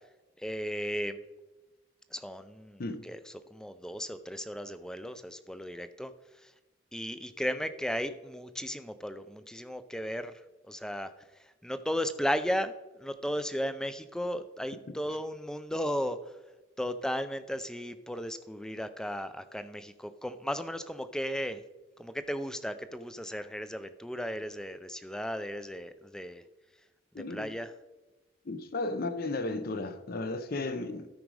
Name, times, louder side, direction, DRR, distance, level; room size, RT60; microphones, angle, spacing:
voice 1, 0.4-1.2 2.1-3.2 3.5-6.1 6.4-6.5 6.9-11.1 11.4-12.7 13.0-16.2 16.8-21.6 22.0-26.4 27.1-27.7, equal, 5° left, 0.4 m, -35 dB
voice 2, 27.1-27.6 28.4-31.1, left 2 dB, 50° left, 0.6 m, -34 dB
12.5 x 5.1 x 4.8 m
head